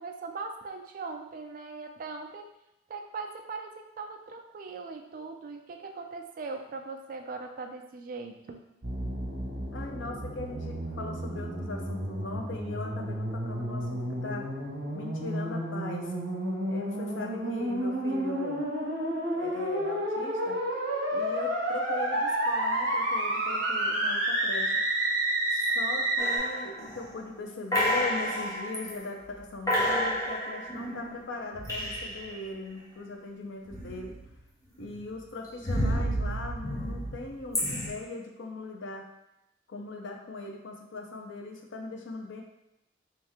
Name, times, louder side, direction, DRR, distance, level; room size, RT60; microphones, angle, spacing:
voice 1, 0.0-2.5 2.9-8.6, right 4 dB, 50° right, 4 dB, 0.3 m, -40 dB
sound 1, 8.8-26.4, right 1 dB, 85° right, 1.1 m, -30 dB
voice 2, 9.7-14.5 14.9-16.1 16.7-18.7 19.3-20.6 21.1-24.8 25.5-34.1 34.8-39.1 39.7-42.4, left 2 dB, 90° left, 2 dB, 0.6 m, -39 dB
sound 2, 26.2-27.2 27.7-28.9 29.3-29.4 29.7-32.4 33.7-34.4 34.8-37.9, equal, 15° left, 0.7 m, -31 dB
3.2 x 2.9 x 3.5 m, 0.88 s
head